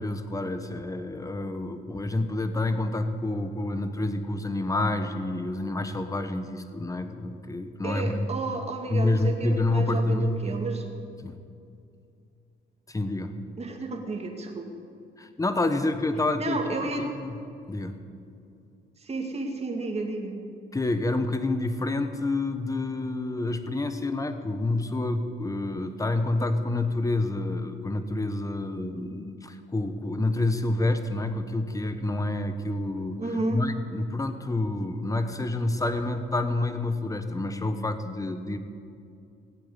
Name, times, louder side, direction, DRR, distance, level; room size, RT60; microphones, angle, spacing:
voice 1, 0.0-8.3 8.9-10.7 11.2-11.4 12.9-13.3 15.2-17.4 17.7-18.0 20.7-38.6, left 2 dB, 15° left, 9 dB, 1.2 m, -28 dB
voice 2, 7.8-10.9 13.6-14.6 16.4-17.1 19.0-20.4 33.2-33.6, right 2 dB, 30° right, 2 dB, 2.4 m, -32 dB
18.5 x 8.4 x 8.5 m, 2.5 s
cardioid pair, 90°, 20 cm